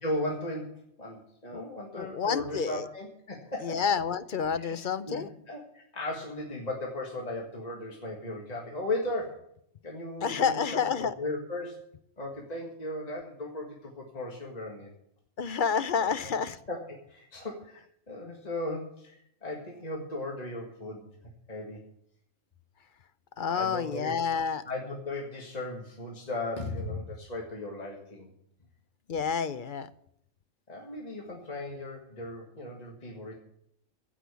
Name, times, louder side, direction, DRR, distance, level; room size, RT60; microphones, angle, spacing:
voice 1, 0.0-3.8 4.6-4.8 5.1-9.5 9.8-11.8 12.2-14.9 16.0-16.3 16.7-21.1 21.5-21.9 23.5-24.1 24.7-28.3 30.7-33.4, left 1 dB, 30° left, 0 dB, 1.9 m, -37 dB
voice 2, 2.0-2.9 3.6-5.3 10.2-11.1 15.4-16.6 23.4-24.6 29.1-29.9, left 6 dB, 50° left, 13 dB, 0.7 m, -29 dB
15.0 x 6.2 x 8.3 m, 0.72 s
omnidirectional pair, 1.3 m